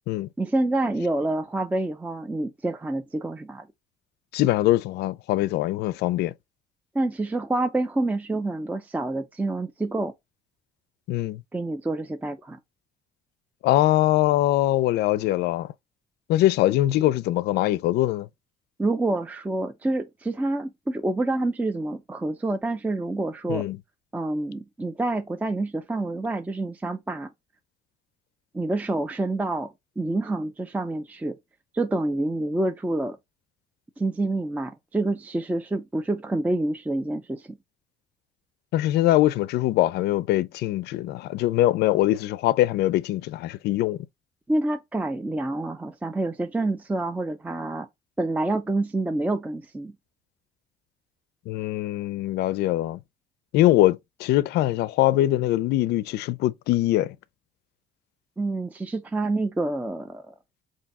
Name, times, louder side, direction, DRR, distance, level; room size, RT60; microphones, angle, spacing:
voice 1, 0.4-3.7 6.9-10.1 11.5-12.6 18.8-23.6 24.1-27.3 28.5-29.7 30.0-31.4 31.7-33.2 34.0-37.6 44.5-47.9 48.2-49.9 58.4-60.3, right 2 dB, 10° right, 0.4 m, -27 dB
voice 2, 4.3-6.3 11.1-11.4 13.6-15.7 16.3-18.3 23.5-23.8 38.7-44.0 51.5-53.0 53.5-57.2, left 15 dB, 75° left, 0.4 m, -22 dB
3.4 x 2.7 x 4.0 m
cardioid pair, 110°, 17 cm